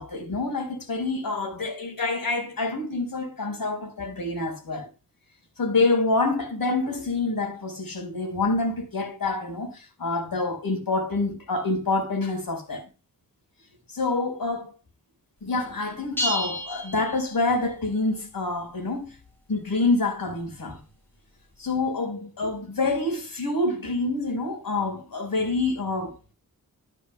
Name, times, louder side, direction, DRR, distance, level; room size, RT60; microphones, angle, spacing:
voice 1, 0.0-4.9 5.6-12.9 13.9-14.7 15.4-19.1 19.5-20.8 21.6-26.1, left 3 dB, 70° left, 4.9 m, -27 dB
sound 1, 16.2-17.7, left 1 dB, 5° left, 5.6 m, -31 dB
13.0 x 12.0 x 2.3 m
wide cardioid pair, 120°, 36 cm